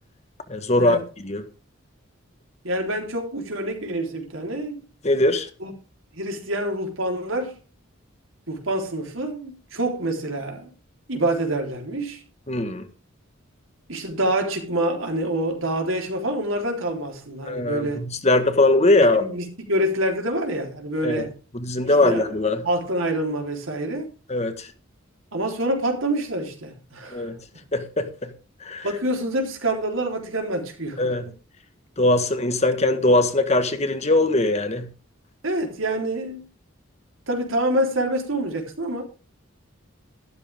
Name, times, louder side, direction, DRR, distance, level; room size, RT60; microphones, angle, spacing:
voice 1, 0.5-1.4 5.0-5.5 12.5-12.9 17.4-19.3 21.0-21.2 21.5-22.6 24.3-24.7 27.1-27.4 27.7-28.3 28.6-28.8 31.0-31.3 32.0-34.9, left 2 dB, 30° left, 1.6 m, -21 dB
voice 2, 2.6-4.8 5.6-5.7 6.1-7.6 8.5-10.7 11.1-12.2 13.9-18.0 19.0-21.3 21.8-22.3 22.6-24.1 25.3-27.3 28.8-31.1 35.4-36.5 37.3-39.0, right 1 dB, 75° right, 3.8 m, -26 dB
13.0 x 12.5 x 3.6 m
head